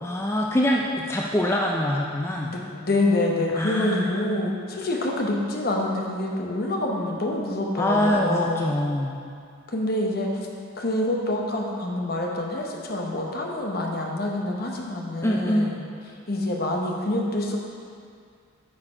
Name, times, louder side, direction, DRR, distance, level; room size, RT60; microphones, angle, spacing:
voice 1, 0.0-2.5 3.6-4.2 7.8-9.2 15.2-15.8, left 1 dB, 10° left, -1 dB, 0.3 m, -24 dB
voice 2, 2.4-8.7 9.7-10.4 10.8-15.8 16.3-17.6, left 1 dB, 45° left, 0 dB, 0.9 m, -26 dB
8.5 x 4.5 x 4.9 m, 2.3 s
head